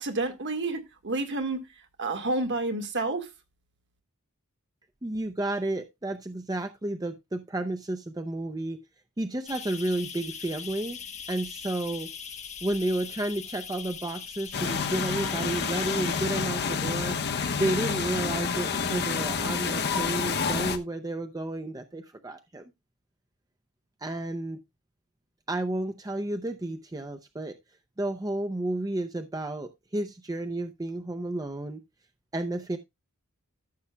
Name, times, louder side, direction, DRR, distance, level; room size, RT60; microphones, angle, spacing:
voice 1, 0.0-1.6 2.0-3.3, right 2 dB, 55° right, 1.7 m, -29 dB
voice 2, 5.0-8.8 9.2-11.0 11.3-12.1 12.6-17.2 17.6-22.6 24.0-24.6 25.5-27.6 28.0-31.8 32.3-32.8, right 1 dB, 15° right, 0.6 m, -31 dB
sound 1, 9.5-16.2, left 7 dB, 30° left, 1.3 m, -41 dB
sound 2, 14.5-20.8, left 5 dB, 50° left, 1.0 m, -29 dB
14.0 x 7.2 x 2.2 m
head